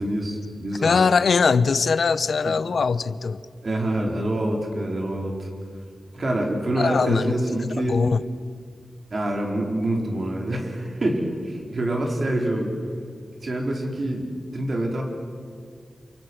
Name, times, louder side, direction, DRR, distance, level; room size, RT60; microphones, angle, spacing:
voice 1, 0.0-1.1 2.5-2.6 3.6-5.5 6.1-7.9 9.1-12.7 13.4-14.3 14.5-15.0, right 1 dB, 45° right, 0 dB, 4.7 m, -26 dB
voice 2, 0.8-3.4 6.8-7.3 7.9-8.2, left 5 dB, 65° left, 15 dB, 0.8 m, -21 dB
29.0 x 28.0 x 6.4 m, 2.1 s
wide cardioid pair, 155°, 0 cm